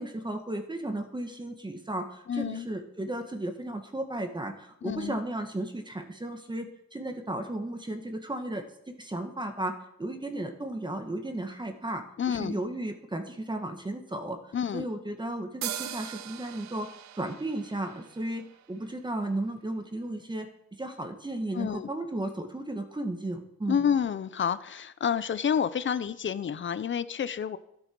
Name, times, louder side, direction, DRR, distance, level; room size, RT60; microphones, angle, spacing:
voice 1, 0.0-9.7 10.0-14.4 14.7-16.9 17.2-20.5 20.8-23.9, right 1 dB, 15° right, 5 dB, 1.9 m, -34 dB
voice 2, 2.3-2.7 4.8-5.2 12.2-12.6 14.5-14.9 21.5-21.9 23.7-27.6, left 7 dB, 40° left, 15 dB, 0.8 m, -29 dB
sound 1, 15.6-19.2, right 11 dB, 70° right, 0.8 m, -41 dB
12.5 x 8.8 x 6.2 m, 0.78 s
cardioid pair, 90°, 30 cm